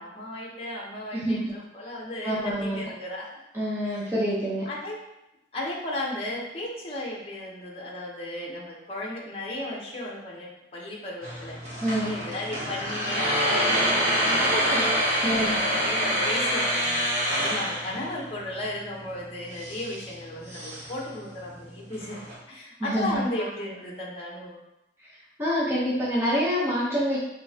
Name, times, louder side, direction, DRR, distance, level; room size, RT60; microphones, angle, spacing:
voice 1, 0.0-3.4 3.8-4.1 4.7-5.0 5.5-14.9 15.2-22.2 22.5-24.6, left 1 dB, 30° left, -3 dB, 0.8 m, -35 dB
voice 2, 1.1-1.5 2.2-2.9 3.5-4.7 11.8-12.1 15.2-15.6 17.9-18.0 22.8-23.2 25.0-25.1 25.4-27.2, equal, 15° right, -7 dB, 0.8 m, -26 dB
sound 1, 11.2-22.3, equal, 40° right, 1.3 m, -27 dB
5.3 x 3.3 x 2.8 m, 0.91 s
head